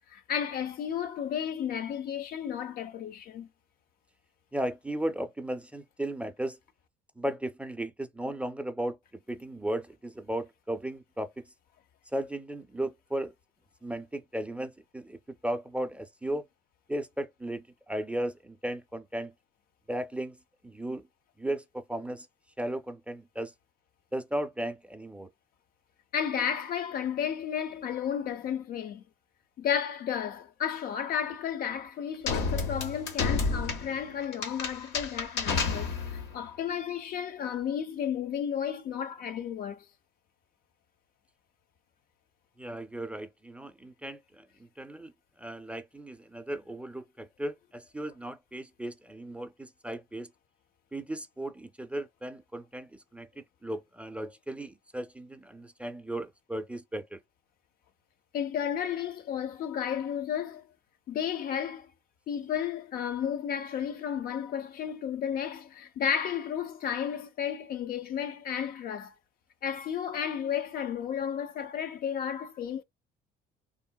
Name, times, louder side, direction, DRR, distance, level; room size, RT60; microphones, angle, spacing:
voice 1, 0.1-3.5 26.1-29.0 29.6-39.8 58.3-60.6 61.1-61.9 62.3-69.1 69.6-72.8, left 8 dB, 60° left, 0.5 m, -33 dB
voice 2, 4.5-6.6 7.2-9.0 9.3-11.4 12.1-13.3 13.8-16.5 16.9-19.3 19.9-20.4 20.6-21.1 21.4-22.3 22.6-23.5 24.1-25.3 42.6-45.1 45.4-50.3 50.9-57.2, right 1 dB, 5° right, 0.4 m, -36 dB
sound 1, 32.3-36.4, left 4 dB, 85° left, 0.8 m, -31 dB
3.7 x 2.0 x 2.2 m
cardioid pair, 110°, 17 cm